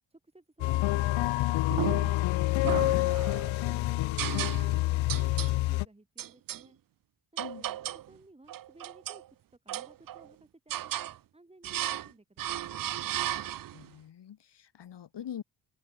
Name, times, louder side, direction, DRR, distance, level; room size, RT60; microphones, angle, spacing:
voice 1, 0.1-2.2 2.9-6.8 7.3-9.2 9.6-12.8, right 2 dB, 15° right, 7.0 m, -57 dB
sound 1, 0.6-5.8, left 17 dB, 75° left, 0.6 m, -27 dB
sound 2, 1.7-2.2 2.6-3.5 4.2-4.8 5.1-5.6 6.2-6.6 7.4-8.1 8.5-9.2 9.7-10.3 10.7-11.2 11.6-12.1 12.4-13.9, right 12 dB, 50° right, 0.5 m, -35 dB
voice 2, 13.7-15.4, left 9 dB, 60° left, 2.6 m, -44 dB
cardioid pair, 125°, 46 cm